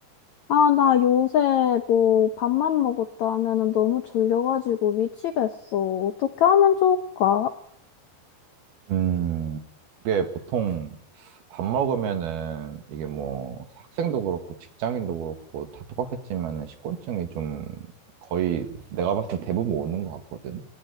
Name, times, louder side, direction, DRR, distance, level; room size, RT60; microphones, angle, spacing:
voice 1, 0.5-7.5, left 9 dB, 90° left, 9 dB, 1.6 m, -21 dB
voice 2, 8.9-9.7 10.1-14.4 14.8-17.9 18.2-20.6, right 8 dB, 65° right, 8 dB, 3.6 m, -29 dB
22.5 x 18.0 x 9.5 m, 0.68 s
omnidirectional pair, 4.9 m